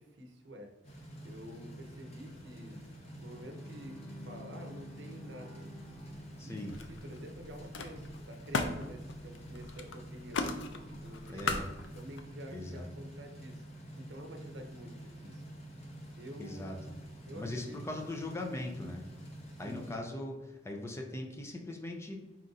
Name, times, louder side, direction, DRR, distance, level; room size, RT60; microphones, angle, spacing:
voice 1, 0.0-2.8 3.2-4.0 4.3-5.7 6.4-15.4 16.1-16.6 17.3-18.1 19.5-20.0, equal, 70° right, 4 dB, 0.7 m, -49 dB
sound 1, 0.8-20.0, right 1 dB, 35° left, 0.9 m, -48 dB
Bowed string instrument, 3.0-7.0, left 2 dB, 20° right, 1.0 m, -53 dB
Camera, 5.8-6.4 6.7-12.2, left 3 dB, 85° left, 0.4 m, -39 dB
voice 2, 6.4-6.8 11.3-11.7 12.5-12.9 16.4-16.8 17.3-19.0 19.6-22.2, left 1 dB, 15° left, 1 dB, 0.4 m, -40 dB
4.3 x 2.5 x 3.8 m, 0.99 s
head